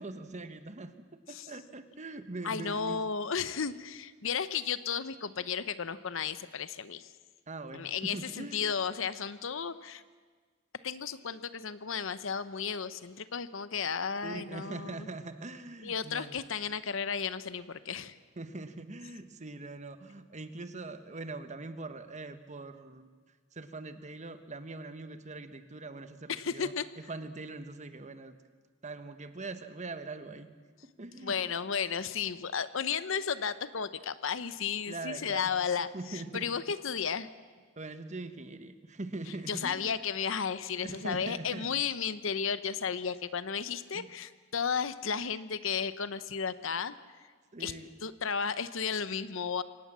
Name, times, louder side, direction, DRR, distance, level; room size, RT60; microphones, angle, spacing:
voice 1, 0.0-3.0 7.5-8.6 14.2-16.3 18.4-23.1 23.5-28.4 28.8-30.5 30.8-31.4 34.9-35.5 35.9-36.5 37.8-39.9 40.8-41.7 43.9-44.1 47.5-47.9, right 2 dB, 35° right, 10 dB, 1.2 m, -42 dB
voice 2, 2.4-7.1 7.7-10.0 10.8-15.1 15.8-18.2 26.3-26.9 31.2-35.9 36.1-37.3 39.5-47.0 47.6-47.7 48.0-49.6, left 6 dB, 70° left, 14 dB, 0.9 m, -33 dB
24.5 x 18.0 x 7.5 m, 1.5 s
head